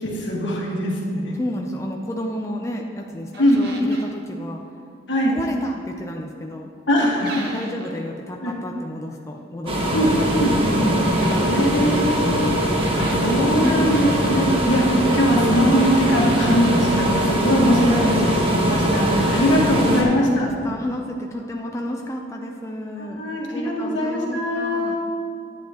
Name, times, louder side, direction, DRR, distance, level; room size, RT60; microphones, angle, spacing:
voice 1, 0.0-1.3 3.4-3.6 5.1-5.4 6.9-7.4 8.4-8.5 9.9-10.1 10.4-10.5 11.4-12.5 12.9-20.5 23.0-25.0, equal, 75° left, -3 dB, 1.6 m, -21 dB
voice 2, 1.4-4.6 5.3-6.7 7.2-10.2 10.6-11.8 13.6-13.9 19.7-23.2 23.5-25.0, left 1 dB, 15° left, 1 dB, 0.4 m, -31 dB
sound 1, 3.3-4.2 7.2-8.0 11.1-12.1 12.7-14.7 15.7-17.1 17.6-18.2 18.5-18.8, right 2 dB, 60° right, 0.9 m, -39 dB
sound 2, 9.7-20.0, right 1 dB, 30° right, 1.1 m, -21 dB
10.5 x 8.8 x 2.9 m, 2.5 s
head